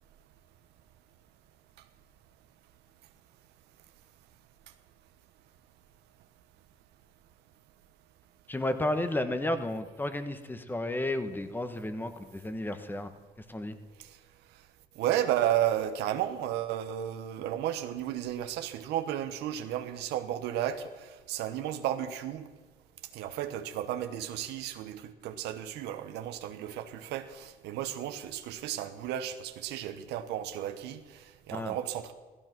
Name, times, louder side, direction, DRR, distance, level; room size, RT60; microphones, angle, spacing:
voice 1, 8.5-13.1 13.5-13.8 31.5-31.8, left 1 dB, 10° left, 9 dB, 1.3 m, -32 dB
voice 2, 15.0-22.5 23.1-32.1, right 11 dB, 85° right, 8 dB, 1.2 m, -33 dB
16.0 x 14.5 x 6.1 m, 1.3 s
cardioid pair, 110°, 17 cm